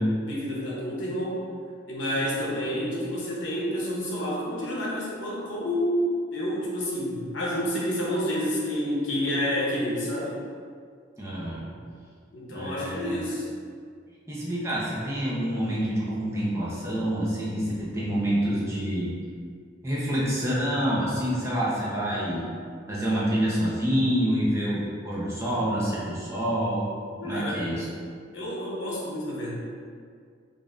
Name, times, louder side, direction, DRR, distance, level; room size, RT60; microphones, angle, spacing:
voice 1, 0.3-1.5 1.9-6.0 6.3-10.3 12.3-13.5 27.2-27.6 28.3-29.5, equal, 80° left, -5 dB, 0.9 m, -29 dB
voice 2, 11.2-11.8 12.5-13.2 14.3-19.2 19.8-22.5 22.9-26.9 27.2-27.9, equal, 15° right, -7 dB, 0.7 m, -27 dB
5.1 x 2.6 x 2.5 m, 2.2 s
head